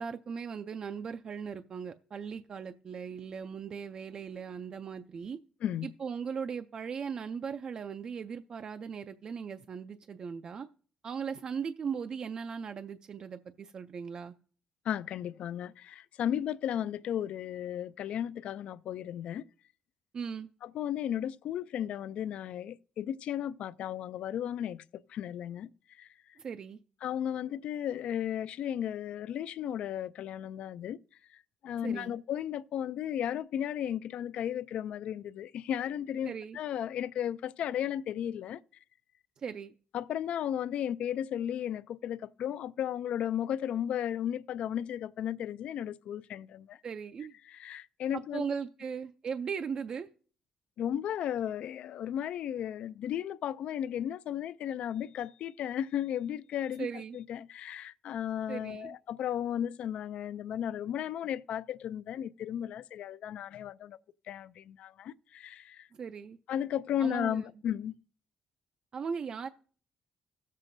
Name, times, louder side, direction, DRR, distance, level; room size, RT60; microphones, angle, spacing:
voice 1, 0.0-5.4 5.8-10.7 11.0-14.3 20.1-20.5 26.4-26.8 31.8-32.1 36.2-36.6 39.4-39.7 46.8-47.3 48.1-50.1 56.8-57.2 58.5-59.0 65.9-66.4 67.0-67.5 68.9-69.5, right 6 dB, 40° right, 0.3 m, -38 dB
voice 2, 14.9-19.4 20.6-24.8 25.1-25.7 26.0-26.1 27.0-31.0 31.6-38.6 39.9-46.8 47.6-48.4 50.8-56.9 57.1-64.0 64.3-65.9 66.5-67.9, left 10 dB, 65° left, 0.3 m, -34 dB
17.0 x 7.4 x 2.6 m
cardioid pair, 145°, 2 cm